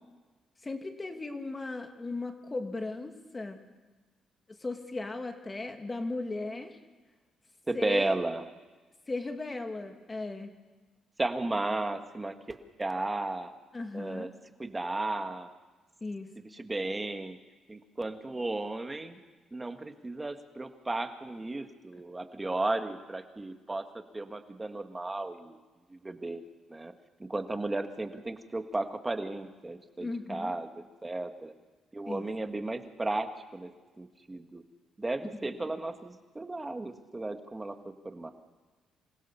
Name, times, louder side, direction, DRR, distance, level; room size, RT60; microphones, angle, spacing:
voice 1, 0.6-3.6 4.5-6.8 7.7-8.2 9.1-10.5 13.7-14.3 16.0-16.3 30.0-30.5 32.1-32.3, left 3 dB, 25° left, 5 dB, 2.4 m, -36 dB
voice 2, 7.7-8.4 11.2-13.5 13.9-14.3 14.6-15.5 16.5-17.4 17.7-19.2 19.5-25.6 25.9-26.4 26.7-26.9 27.2-31.5 31.9-33.7 34.0-34.6 35.0-37.8 38.0-38.3, right 2 dB, 20° right, 7 dB, 1.8 m, -34 dB
26.0 x 16.5 x 7.0 m, 1.3 s
cardioid pair, 90°, 0 cm